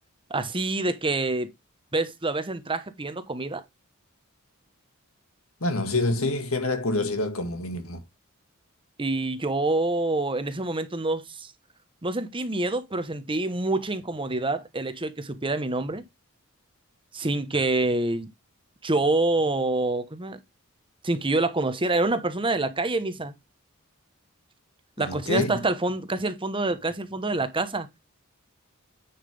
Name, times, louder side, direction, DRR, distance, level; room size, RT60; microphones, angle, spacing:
voice 1, 0.3-1.5 1.9-3.6 9.0-11.5 12.0-16.0 17.1-18.3 18.8-20.4 21.0-23.3 25.0-27.9, right 2 dB, 25° right, 1.1 m, -26 dB
voice 2, 5.6-8.0 25.0-25.7, left 2 dB, 70° left, 1.9 m, -27 dB
10.0 x 6.0 x 3.4 m
head